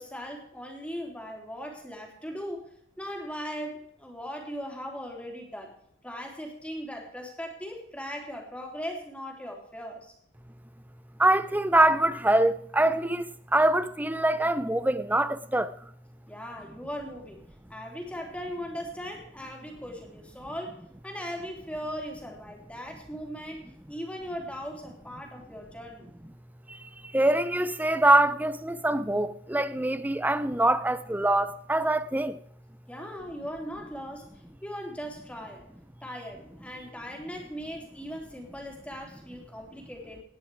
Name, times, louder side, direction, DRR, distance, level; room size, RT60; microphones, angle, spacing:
voice 1, 0.0-5.7 6.0-10.1 16.3-26.1 32.9-34.3 34.6-35.6 36.0-40.2, equal, 5° left, 3.1 m, -39 dB
voice 2, 11.2-15.7 26.7-32.4, right 1 dB, 10° right, 0.6 m, -24 dB
18.5 x 10.0 x 4.8 m
head